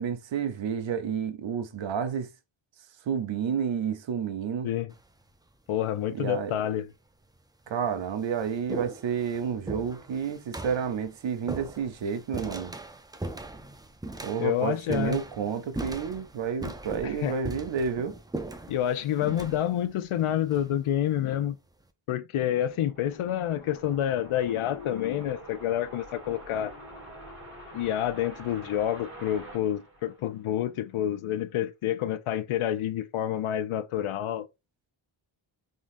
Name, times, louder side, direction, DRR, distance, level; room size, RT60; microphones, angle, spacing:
voice 1, 0.0-2.3 3.1-4.7 6.1-6.5 7.7-12.7 14.2-18.1, right 7 dB, 65° right, 0.8 m, -30 dB
sound 1, 4.9-5.3 6.3-6.4 7.2-7.3 7.7-21.2, right 2 dB, 10° right, 0.4 m, -40 dB
voice 2, 5.7-6.9 14.4-15.2 17.0-17.4 18.7-21.5 22.1-26.7 27.7-34.5, left 11 dB, 80° left, 0.6 m, -28 dB
sound 2, 22.5-30.7, right 1 dB, 25° right, 2.0 m, -47 dB
3.8 x 3.7 x 2.5 m
wide cardioid pair, 135°, 49 cm